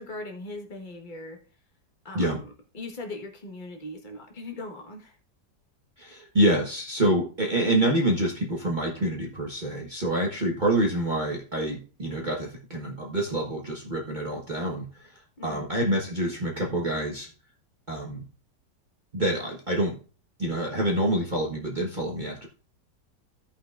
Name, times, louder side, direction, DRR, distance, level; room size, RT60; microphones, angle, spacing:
voice 1, 0.0-1.4 2.0-5.2 15.4-15.6, left 2 dB, 30° left, 3 dB, 1.5 m, -39 dB
voice 2, 6.0-17.3 17.9-18.2 19.1-19.9 20.4-22.5, right 1 dB, 30° right, -2 dB, 1.4 m, -27 dB
16.0 x 5.8 x 2.5 m, 0.37 s
omnidirectional pair, 1.9 m